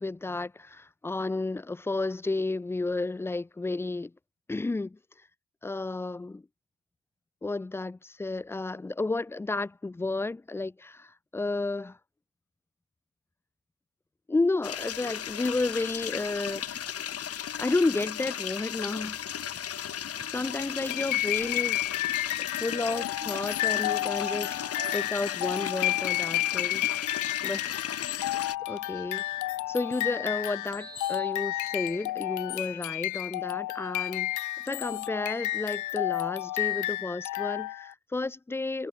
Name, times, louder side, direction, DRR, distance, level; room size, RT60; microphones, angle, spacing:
voice 1, 0.0-4.1 4.5-5.0 5.6-6.4 7.4-12.0 14.3-16.6 17.6-19.2 19.8-19.9 20.3-22.0 22.5-26.8 27.4-28.4 28.7-29.2 29.7-38.9, left 3 dB, 10° left, 0.3 m, -32 dB
sound 1, 14.6-28.6, left 9 dB, 50° left, 1.2 m, -35 dB
sound 2, 19.0-33.2, right 4 dB, 30° right, 7.7 m, -51 dB
sound 3, 20.9-37.9, left 16 dB, 80° left, 0.8 m, -31 dB
cardioid pair, 90°, 30 cm